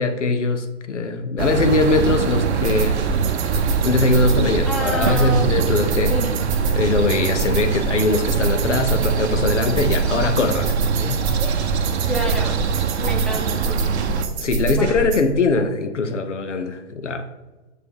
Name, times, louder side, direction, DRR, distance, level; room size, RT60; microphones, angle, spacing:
voice 1, 0.0-3.0 3.8-6.2 6.7-11.2 14.4-17.3, left 3 dB, 75° left, 0.7 m, -21 dB
sound 1, 1.4-14.3, right 7 dB, 65° right, 0.7 m, -24 dB
sound 2, 2.6-15.2, right 4 dB, 35° right, 1.2 m, -25 dB
voice 2, 4.6-5.5 6.1-6.3 12.1-12.6 13.0-14.0 14.8-15.0, equal, ahead, 0.3 m, -28 dB
6.3 x 4.7 x 3.7 m
figure-of-eight pair, 100°, 36 cm